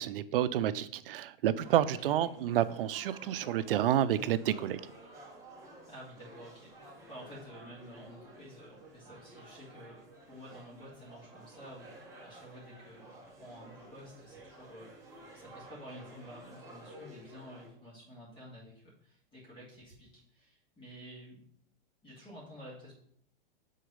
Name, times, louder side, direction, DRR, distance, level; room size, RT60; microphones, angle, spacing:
voice 1, 0.0-4.8, right 11 dB, 70° right, 15 dB, 0.5 m, -29 dB
sound 1, 1.6-17.7, right 1 dB, 10° right, 1.5 m, -53 dB
voice 2, 5.9-10.0 10.3-15.1 15.3-21.4 22.0-22.9, equal, 15° left, -5 dB, 2.6 m, -51 dB
6.5 x 4.0 x 5.1 m, 0.65 s
supercardioid pair, 150°, 29 cm